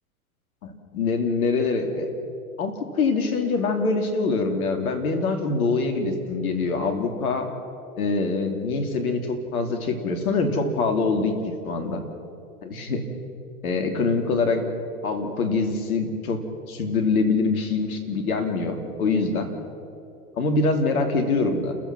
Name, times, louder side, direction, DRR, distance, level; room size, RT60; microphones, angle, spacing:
voice 1, 0.6-2.1 2.6-7.5 8.0-11.3 11.6-12.0 12.6-13.0 13.6-14.7 15.0-19.5 20.4-21.7, left 3 dB, 70° left, 5 dB, 2.9 m, -24 dB
29.5 x 15.0 x 6.1 m, 2.6 s
figure-of-eight pair, 95°, 44 cm